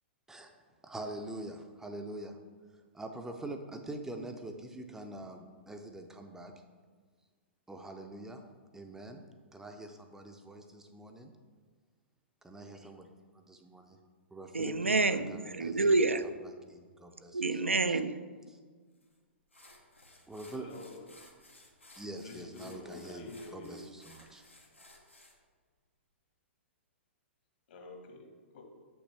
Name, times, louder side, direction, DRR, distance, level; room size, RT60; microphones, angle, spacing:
voice 1, 0.8-2.4 2.9-6.5 7.7-8.4 8.7-9.2 9.5-11.3 12.4-14.0 14.3-15.0 15.3-15.9 16.7-17.6 18.5-18.6 20.3-20.7 22.0-24.4, right 1 dB, 5° right, 0.5 m, -44 dB
voice 2, 14.5-16.2 17.3-18.2, right 3 dB, 85° right, 0.4 m, -28 dB
sound 1, 19.0-19.1 19.5-25.4, left 1 dB, 90° left, 1.1 m, -58 dB
voice 3, 20.4-21.2 22.2-23.9 27.7-28.6, left 2 dB, 55° left, 1.4 m, -48 dB
7.8 x 6.1 x 3.3 m
figure-of-eight pair, 110°, 7 cm